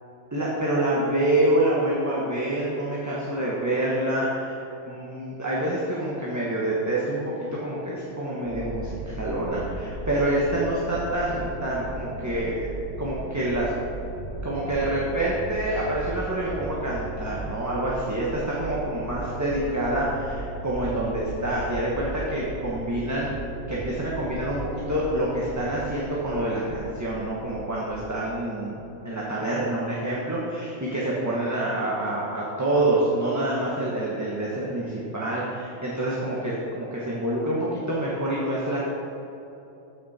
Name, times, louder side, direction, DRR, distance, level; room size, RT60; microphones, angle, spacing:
voice 1, 0.3-7.2 7.5-12.7 13.0-13.7 14.4-23.3 23.7-24.6 24.9-38.9, right 1 dB, 15° right, -6 dB, 1.2 m, -27 dB
sound 1, 8.4-28.1, right 2 dB, 65° left, 2.5 m, -37 dB
14.0 x 6.3 x 4.2 m, 2.9 s
omnidirectional pair, 1.5 m